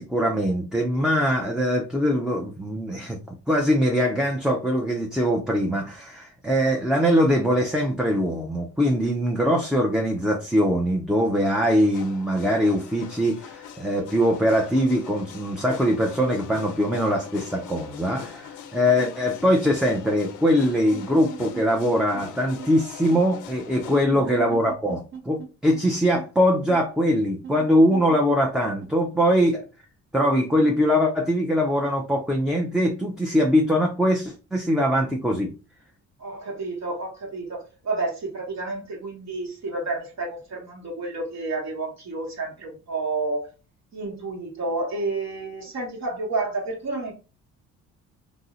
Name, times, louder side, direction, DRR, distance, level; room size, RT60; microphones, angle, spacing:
voice 1, 0.0-29.6 30.1-35.5, equal, ahead, 0.4 m, -22 dB
sound 1, 11.9-24.1, left 9 dB, 85° left, 0.5 m, -41 dB
sound 2, 20.9-21.9 22.1-22.2 22.6-22.7 23.1-23.2 23.8-24.0 24.5-25.5 25.7-25.8 26.1-26.3 26.7-26.8 27.4-28.9, right 7 dB, 45° right, 0.6 m, -39 dB
voice 2, 24.1-24.5 36.2-43.5 43.9-47.1, right 3 dB, 60° right, 1.0 m, -30 dB
2.6 x 2.0 x 3.8 m
cardioid pair, 90°, 30 cm